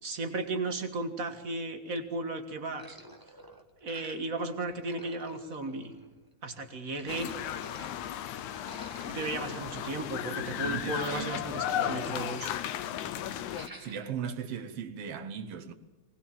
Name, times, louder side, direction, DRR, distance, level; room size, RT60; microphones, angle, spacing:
voice 1, 0.0-3.0 3.8-5.9 6.4-7.4 9.1-12.5, right 2 dB, 35° right, 1.5 m, -35 dB
sound 1, 2.8-4.4 4.7-6.3 6.7-7.9 8.4-11.5 11.8-13.0 13.4-14.1, right 1 dB, 15° right, 0.7 m, -51 dB
sound 2, 7.1-13.7, left 11 dB, 85° left, 2.3 m, -35 dB
voice 2, 10.6-11.4 13.8-15.7, right 7 dB, 65° right, 1.8 m, -38 dB
21.0 x 19.5 x 7.4 m
omnidirectional pair, 3.3 m